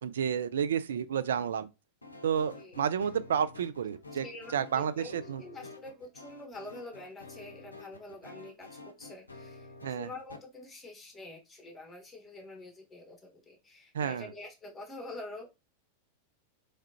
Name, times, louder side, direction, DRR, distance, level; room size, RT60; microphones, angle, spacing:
voice 1, 0.0-1.7 2.2-4.3 4.5-5.4 9.8-10.1 13.9-14.3, right 8 dB, 65° right, 0.3 m, -31 dB
sound 1, 2.0-10.4, left 3 dB, 80° left, 0.6 m, -50 dB
voice 2, 4.2-15.5, left 2 dB, 15° left, 1.3 m, -46 dB
3.6 x 3.3 x 2.7 m
figure-of-eight pair, 90°, 0 cm